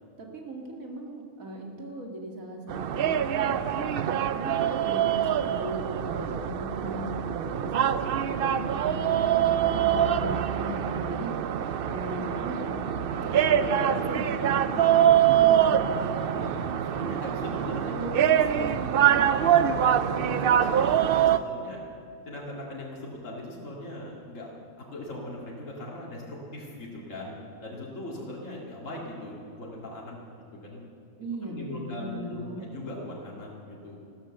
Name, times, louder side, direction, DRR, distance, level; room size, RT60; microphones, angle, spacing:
voice 1, 0.2-4.0 4.3-7.7 8.2-11.3 11.9-13.0 13.2-16.1 17.5-19.4 31.2-32.6, right 1 dB, 80° right, 1 dB, 2.5 m, -38 dB
sound 1, 2.7-21.4, right 9 dB, 60° right, 0.6 m, -24 dB
voice 2, 7.9-8.3 14.7-15.4 15.8-18.5 19.4-20.9 21.1-21.8 22.3-24.5 24.9-27.3 27.6-30.1 30.6-30.8 31.5-34.0, left 1 dB, 65° left, -4 dB, 2.6 m, -40 dB
15.0 x 13.0 x 7.6 m, 2.6 s
omnidirectional pair, 1.4 m